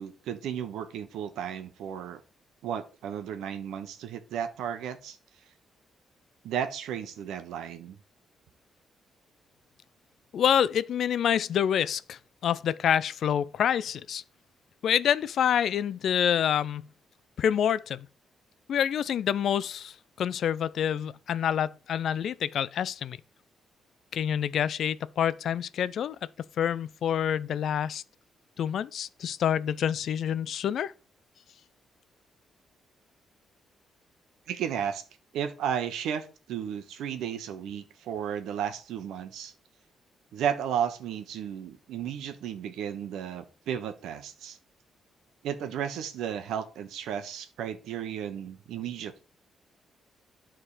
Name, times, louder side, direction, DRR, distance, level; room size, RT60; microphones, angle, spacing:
voice 1, 0.0-2.2 2.6-5.2 6.4-8.0 34.5-35.0 35.3-39.5 40.3-44.6 45.4-49.2, right 9 dB, 90° right, 1.0 m, -34 dB
voice 2, 10.3-14.2 14.8-16.9 17.4-18.1 18.7-23.2 24.1-26.2 26.6-28.0 28.6-30.9, left 9 dB, 70° left, 0.4 m, -27 dB
11.0 x 3.7 x 4.9 m
cardioid pair, 85°, 0 cm